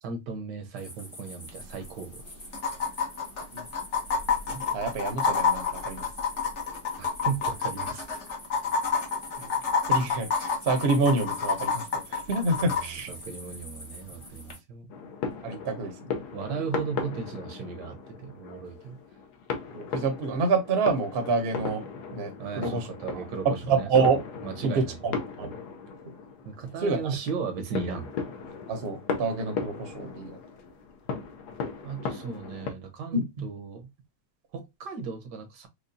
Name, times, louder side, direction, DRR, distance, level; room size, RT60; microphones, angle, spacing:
voice 1, 0.0-2.2 7.0-8.0 12.6-14.9 16.3-19.0 22.4-24.1 24.4-25.0 26.4-28.1 31.8-33.9 34.5-35.7, right 5 dB, 75° right, 1.4 m, -36 dB
sound 1, 0.8-14.6, left 1 dB, 20° left, 0.9 m, -46 dB
sound 2, 1.5-1.6 1.8-1.9 2.5-12.8 14.5-14.6, left 5 dB, 50° left, 1.1 m, -28 dB
voice 2, 4.5-6.0 9.4-9.5 9.9-13.1 15.4-16.1 19.7-21.8 22.1-22.9 23.4-24.2 24.6-25.5 26.8-27.0 28.7-30.4 33.1-33.5, right 4 dB, 50° right, 0.8 m, -27 dB
sound 3, 14.9-32.7, left 5 dB, 70° left, 1.2 m, -37 dB
4.9 x 2.3 x 2.6 m
omnidirectional pair, 1.9 m